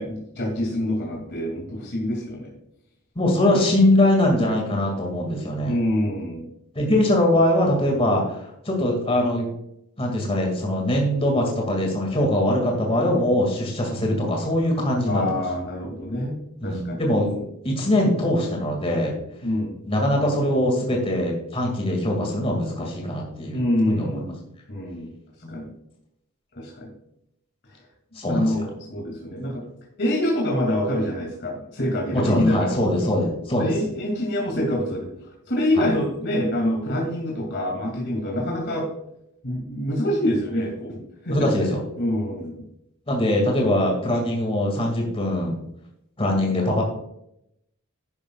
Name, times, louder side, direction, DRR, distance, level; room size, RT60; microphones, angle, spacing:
voice 1, 0.0-2.5 5.6-6.4 15.1-16.4 16.6-17.4 19.4-19.8 23.5-24.4 24.7-25.1 25.5-25.7 26.6-26.9 28.2-29.6 30.0-32.8 33.5-35.1 35.5-38.9 39.4-41.0 41.2-41.5 42.0-42.6, left 1 dB, 55° left, -1 dB, 2.5 m, -26 dB
voice 2, 3.2-5.8 6.8-9.5 10.0-15.4 16.6-17.3 17.6-19.1 19.9-23.6 23.9-24.2 28.2-28.6 32.1-33.7 35.8-35.9 38.4-38.5 41.3-41.8 43.1-45.6 46.2-46.8, left 1 dB, 25° left, 0 dB, 2.2 m, -22 dB
11.0 x 10.5 x 2.4 m, 0.78 s
head